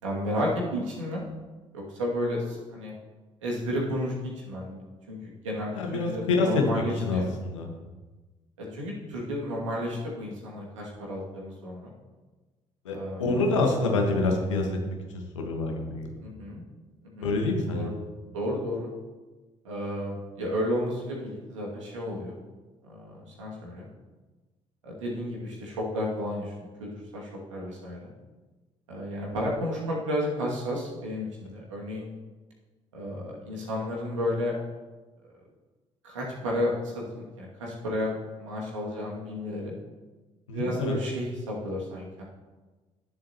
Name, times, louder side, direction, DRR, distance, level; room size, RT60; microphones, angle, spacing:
voice 1, 0.0-1.2 1.7-2.9 3.4-4.8 5.1-7.3 8.7-11.9 12.9-13.4 16.2-16.6 17.1-17.3 17.7-17.9 18.3-18.9 19.6-22.4 22.8-23.9 24.8-26.5 26.8-26.9 27.1-28.1 28.9-32.1 32.9-34.5 36.0-39.7 40.5-42.2, equal, 80° right, -3 dB, 2.4 m, -32 dB
voice 2, 5.7-7.7 12.8-14.7 15.3-16.2 17.2-18.0 40.5-40.9, left 3 dB, 80° left, 2 dB, 1.5 m, -27 dB
18.0 x 7.5 x 3.0 m, 1.3 s
figure-of-eight pair, 50°, 16 cm